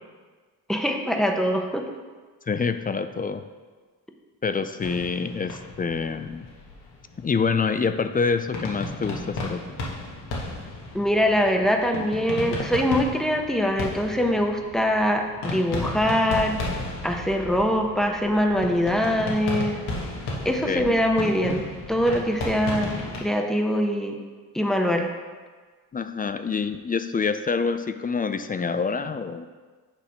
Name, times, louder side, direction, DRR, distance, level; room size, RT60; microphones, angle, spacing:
voice 1, 0.7-1.8 10.9-16.5 17.0-19.8 20.4-22.9 23.2-24.2 24.5-25.1, equal, ahead, 3 dB, 0.8 m, -23 dB
voice 2, 2.5-3.4 4.4-6.5 7.2-9.8 20.5-21.0 25.9-29.5, left 5 dB, 25° left, 10 dB, 0.3 m, -26 dB
sound 1, 4.8-23.2, left 2 dB, 85° left, 1.5 m, -34 dB
8.6 x 3.4 x 5.8 m, 1.5 s
cardioid pair, 75°, 39 cm